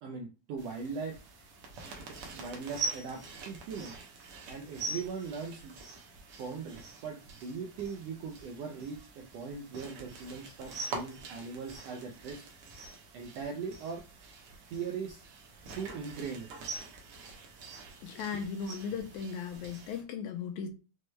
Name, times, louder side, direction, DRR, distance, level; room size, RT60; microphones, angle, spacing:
voice 1, 0.0-1.2 2.3-4.0 4.5-5.7 6.4-12.4 13.1-14.0 14.7-15.3 15.7-16.5, right 5 dB, 80° right, 1.4 m, -40 dB
sound 1, 0.6-20.0, right 3 dB, 65° right, 1.5 m, -44 dB
voice 2, 18.0-20.7, left 6 dB, 80° left, 2.0 m, -37 dB
6.0 x 2.2 x 3.1 m
omnidirectional pair, 3.6 m